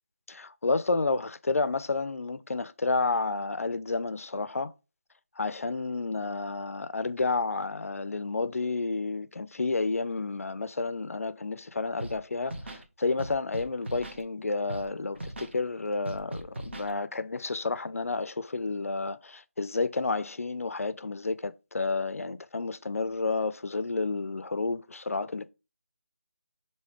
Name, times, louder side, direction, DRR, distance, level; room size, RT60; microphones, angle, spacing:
voice 1, 0.3-4.7 5.4-25.5, left 3 dB, 80° left, 0.4 m, -30 dB
Scratching (performance technique), 12.0-12.2 12.4-12.8 13.2-14.2 14.7-14.9 15.1-15.5 16.1-16.9, right 1 dB, 55° right, 0.7 m, -39 dB
4.5 x 2.7 x 3.4 m
figure-of-eight pair, 170°, 8 cm